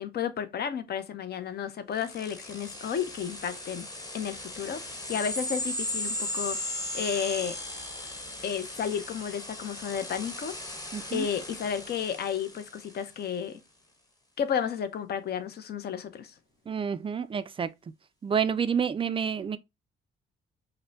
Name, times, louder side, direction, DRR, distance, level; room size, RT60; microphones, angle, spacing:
voice 1, 0.0-3.9 4.1-7.6 8.4-10.6 11.1-13.6 14.4-16.3, left 8 dB, 55° left, 0.6 m, -32 dB
sound 1, 2.0-13.1, left 1 dB, 20° left, 1.0 m, -37 dB
voice 2, 10.9-11.2 16.7-17.7 18.2-19.6, right 7 dB, 25° right, 0.3 m, -28 dB
5.1 x 2.1 x 2.6 m
cardioid pair, 90°, 20 cm